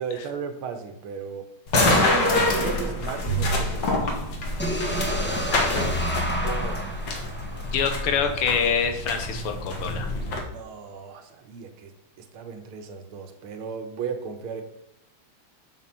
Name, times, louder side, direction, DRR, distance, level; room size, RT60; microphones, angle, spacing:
voice 1, 0.0-1.5 1.7-2.1 2.5-4.0 6.4-6.9 10.5-11.9 12.2-14.6, right 6 dB, 75° right, 7 dB, 1.8 m, -35 dB
sound 1, 1.7-10.4, left 2 dB, 55° left, 2.0 m, -26 dB
Bowed string instrument, 3.2-8.9, right 6 dB, 40° right, 1.1 m, -36 dB
sound 2, 4.6-8.5, equal, 15° left, 0.4 m, -30 dB
voice 2, 7.7-10.1, left 6 dB, 80° left, 6 dB, 2.0 m, -25 dB
6.9 x 6.0 x 5.5 m, 0.81 s
omnidirectional pair, 2.4 m